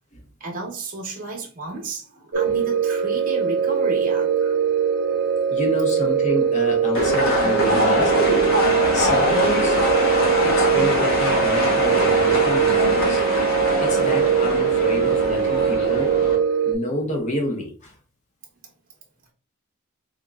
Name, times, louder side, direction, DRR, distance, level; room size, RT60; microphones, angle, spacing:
voice 1, 0.4-4.5, right 2 dB, 40° right, 0.8 m, -32 dB
sound 1, 2.3-16.7, right 7 dB, 55° right, 0.4 m, -21 dB
voice 2, 5.5-8.4 8.9-9.8 10.4-13.2 13.8-16.2 16.6-17.9, left 1 dB, 35° left, 0.8 m, -28 dB
sound 2, 7.0-16.4, left 1 dB, 60° left, 1.2 m, -23 dB
3.6 x 2.9 x 2.3 m
head